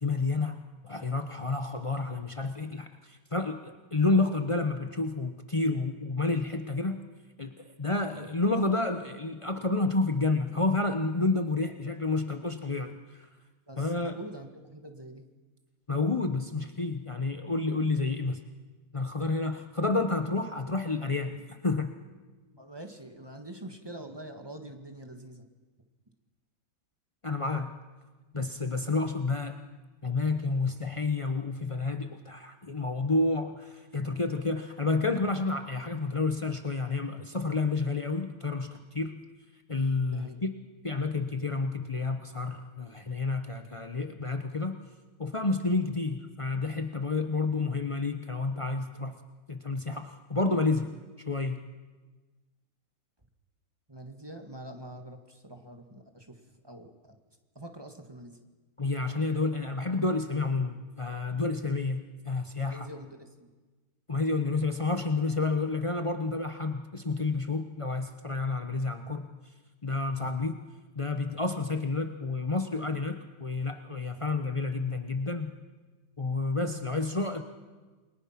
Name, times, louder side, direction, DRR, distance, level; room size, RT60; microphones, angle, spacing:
voice 1, 0.0-7.0 7.4-13.3 13.8-14.2 15.9-18.4 18.9-21.9 27.2-27.8 28.3-29.6 30.0-39.2 39.7-40.5 40.8-44.8 45.2-49.2 49.5-50.9 51.3-51.6 58.8-62.9 64.1-69.3 69.8-70.6 71.0-75.5 76.2-77.4, left 3 dB, 60° left, 6 dB, 0.3 m, -30 dB
voice 2, 13.7-15.3 22.5-25.5 40.1-40.4 53.9-57.2 57.6-58.4 62.6-63.5, right 1 dB, 10° right, 5 dB, 1.8 m, -45 dB
29.0 x 22.0 x 6.0 m, 1.3 s
omnidirectional pair, 2.3 m